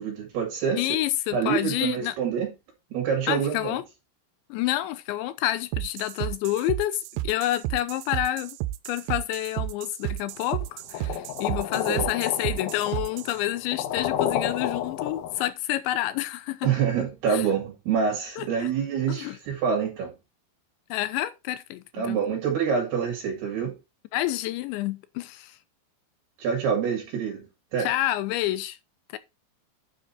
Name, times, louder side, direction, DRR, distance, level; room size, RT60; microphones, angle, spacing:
voice 1, 0.0-0.9 1.3-2.5 2.9-3.7 11.7-12.1 16.6-20.1 21.9-23.8 26.4-27.9, right 7 dB, 65° right, 4.1 m, -26 dB
voice 2, 0.7-2.1 3.3-3.8 4.5-8.6 8.9-16.7 17.3-17.5 18.4-18.7 19.1-19.4 20.9-22.2 24.1-25.6 27.8-28.8 29.1-29.2, left 14 dB, 85° left, 3.1 m, -28 dB
sound 1, 5.7-13.4, right 16 dB, 90° right, 3.0 m, -32 dB
sound 2, 10.9-15.5, left 10 dB, 70° left, 2.6 m, -30 dB
9.9 x 6.5 x 4.2 m
omnidirectional pair, 5.1 m